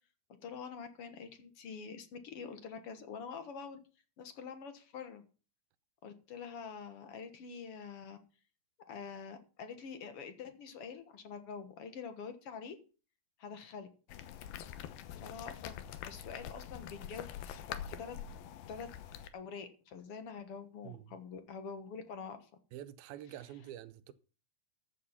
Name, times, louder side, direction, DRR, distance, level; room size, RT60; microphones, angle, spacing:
voice 1, 0.4-3.8 4.2-5.2 6.0-8.2 8.9-12.8 13.4-13.9 15.1-15.8 16.1-18.2 18.7-18.9 19.3-22.5, left 6 dB, 55° left, 1.7 m, -46 dB
sound 1, 14.1-19.3, left 9 dB, 85° left, 2.9 m, -45 dB
voice 2, 20.8-21.2 22.7-24.1, right 12 dB, 90° right, 2.7 m, -47 dB
14.0 x 7.6 x 5.6 m
omnidirectional pair, 4.2 m